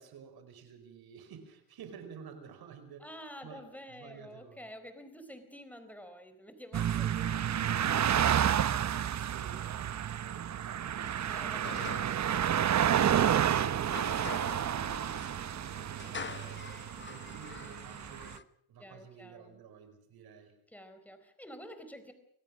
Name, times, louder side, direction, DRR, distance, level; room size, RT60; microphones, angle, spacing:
voice 1, 0.0-4.7 7.2-11.3 14.7-15.3 15.9-16.6 17.1-18.4 18.7-20.6, right 7 dB, 75° right, 8 dB, 4.9 m, -52 dB
voice 2, 3.0-7.2 11.2-12.1 13.5-13.9 18.8-19.6 20.7-22.1, equal, 5° left, 8 dB, 4.3 m, -49 dB
sound 1, 6.7-18.4, right 9 dB, 45° right, 1.0 m, -30 dB
sound 2, 11.0-18.4, left 5 dB, 30° left, 1.2 m, -47 dB
25.0 x 17.0 x 6.3 m, 0.69 s
cardioid pair, 90°, 37 cm